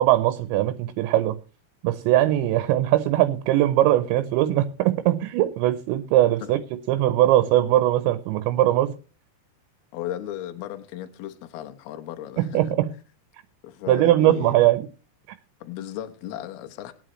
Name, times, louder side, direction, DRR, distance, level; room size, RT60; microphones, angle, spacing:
voice 1, 0.0-1.4 1.8-6.6 6.9-8.9 12.5-12.9 13.9-14.9, right 14 dB, 80° right, 2.8 m, -20 dB
voice 2, 9.9-12.6 13.6-14.7 15.6-16.9, left 12 dB, 70° left, 2.5 m, -36 dB
22.0 x 8.8 x 3.1 m
omnidirectional pair, 5.6 m